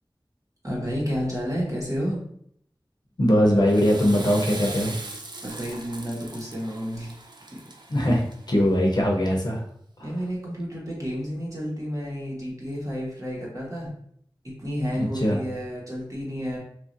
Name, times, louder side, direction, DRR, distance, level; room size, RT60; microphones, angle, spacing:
voice 1, 0.6-2.2 5.4-7.1 10.0-13.9 14.4-16.6, equal, 40° right, -4 dB, 1.2 m, -31 dB
voice 2, 3.2-5.0 7.9-8.2 8.5-9.6 10.0-10.1 14.9-15.4, equal, 50° left, -1 dB, 0.6 m, -21 dB
Water / Toilet flush, 3.5-8.7, right 2 dB, 60° right, 0.5 m, -40 dB
3.0 x 2.6 x 2.5 m, 0.66 s
wide cardioid pair, 50°, 9 cm